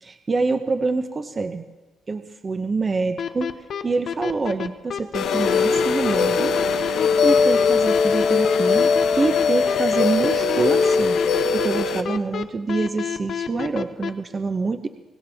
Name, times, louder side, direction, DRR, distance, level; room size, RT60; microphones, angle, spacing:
voice 1, 0.0-1.6 2.1-3.5 3.8-6.6 6.9-14.9, right 3 dB, 30° right, 8 dB, 0.7 m, -26 dB
sound 1, 3.2-14.1, left 8 dB, 60° left, 0.8 m, -29 dB
sound 2, 5.1-12.0, left 5 dB, 75° left, 1.2 m, -20 dB
24.0 x 17.0 x 3.5 m, 1.3 s
cardioid pair, 90°, 0 cm